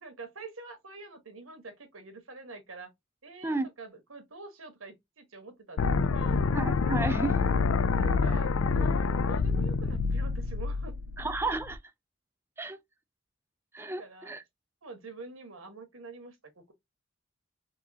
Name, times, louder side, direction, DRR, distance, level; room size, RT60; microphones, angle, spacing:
voice 1, 0.0-2.9 3.2-6.5 8.0-11.0 14.0-14.4 14.8-16.7, right 3 dB, 90° right, 1.5 m, -46 dB
sound 1, 5.8-11.8, left 5 dB, 90° left, 0.4 m, -27 dB
voice 2, 6.5-7.4 11.2-11.8 12.6-12.8 13.7-14.4, right 3 dB, 10° right, 0.3 m, -32 dB
4.6 x 2.9 x 2.8 m
head